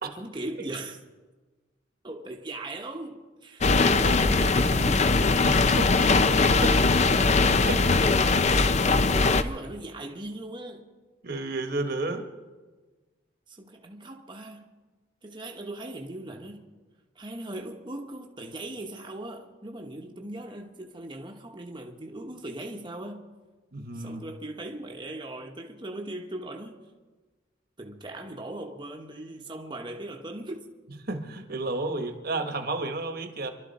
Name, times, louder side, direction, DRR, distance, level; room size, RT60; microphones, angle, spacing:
voice 1, 0.2-1.0 2.0-5.1 9.1-10.9 13.5-14.7 15.2-16.6 17.1-23.3 23.9-26.8 27.8-30.6, right 1 dB, 25° right, 1.1 m, -39 dB
sound 1, 3.6-9.4, left 3 dB, 35° left, 0.6 m, -21 dB
voice 2, 5.4-7.8 11.2-12.3 23.7-24.2 31.0-33.5, right 2 dB, 55° right, 1.3 m, -32 dB
27.0 x 12.0 x 4.2 m
head